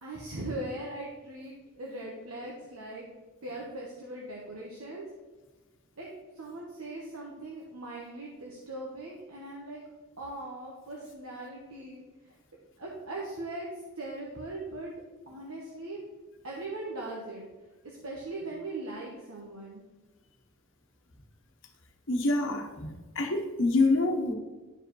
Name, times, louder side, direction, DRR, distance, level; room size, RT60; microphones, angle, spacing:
voice 1, 0.0-3.1 3.4-5.1 6.0-6.1 6.3-9.8 10.2-12.0 12.8-13.7 14.0-14.9 15.3-16.0 16.4-17.4 17.8-19.8, right 2 dB, 75° right, -3 dB, 1.3 m, -40 dB
voice 2, 22.1-24.3, left 2 dB, 60° left, 2 dB, 1.2 m, -26 dB
11.5 x 4.9 x 3.2 m, 1.2 s
head